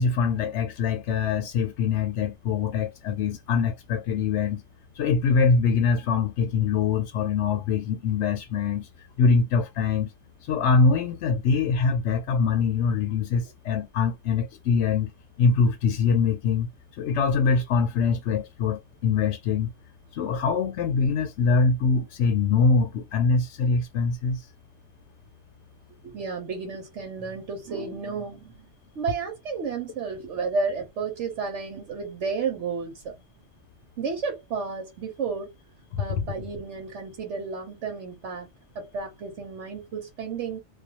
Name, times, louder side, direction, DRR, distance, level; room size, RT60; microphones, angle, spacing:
voice 1, 0.0-4.6 5.0-8.9 9.2-10.1 10.5-15.1 15.4-16.7 17.0-19.7 20.1-24.4 35.9-36.0, left 5 dB, 75° left, 0.9 m, -23 dB
voice 2, 26.0-28.7 28.9-33.1 34.0-35.5 36.0-38.5 38.7-40.6, right 5 dB, 90° right, 1.2 m, -32 dB
2.4 x 2.3 x 2.8 m
omnidirectional pair, 1.2 m